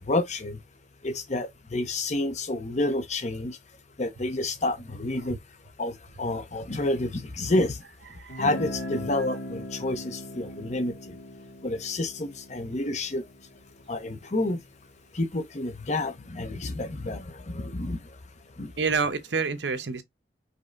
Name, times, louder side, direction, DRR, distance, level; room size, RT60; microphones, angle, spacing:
voice 1, 0.1-0.6 1.0-3.5 4.0-5.4 5.8-7.8 8.4-10.9 11.6-13.2 13.9-14.6 15.2-17.2 17.5-18.0 18.6-18.7, left 2 dB, 40° left, 0.7 m, -29 dB
Guitar, 8.3-14.1, equal, 75° left, 2.1 m, -39 dB
voice 2, 18.8-20.0, right 5 dB, 75° right, 0.8 m, -28 dB
5.3 x 3.2 x 2.5 m
head